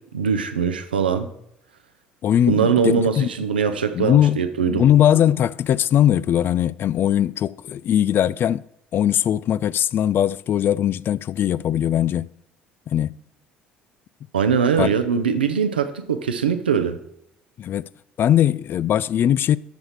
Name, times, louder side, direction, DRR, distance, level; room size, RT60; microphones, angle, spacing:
voice 1, 0.1-1.3 2.5-4.8 14.3-17.0, right 6 dB, 80° right, 0.8 m, -21 dB
voice 2, 2.2-3.3 3.9-4.4 4.7-8.6 8.9-12.3 12.9-13.2 14.8-14.9 17.6-17.9 18.2-19.6, left 10 dB, 45° left, 0.3 m, -20 dB
13.5 x 6.4 x 4.7 m
figure-of-eight pair, 55°, 5 cm